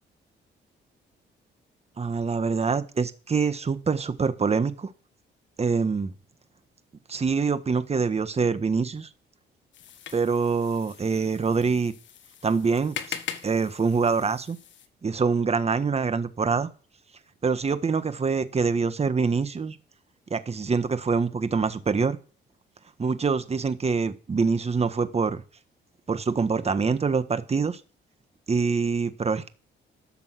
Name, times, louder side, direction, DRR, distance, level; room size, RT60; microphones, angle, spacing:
voice 1, 2.0-4.9 5.6-6.1 7.1-9.1 10.1-11.9 12.4-13.2 13.4-14.6 15.0-16.7 17.4-19.8 20.3-22.2 23.0-25.4 26.1-27.8 28.5-29.5, right 5 dB, 30° right, 11 dB, 1.5 m, -25 dB
sound 1, 9.7-14.9, left 9 dB, 70° left, 1.6 m, -41 dB
13.0 x 6.9 x 7.7 m, 0.37 s
cardioid pair, 90°, 20 cm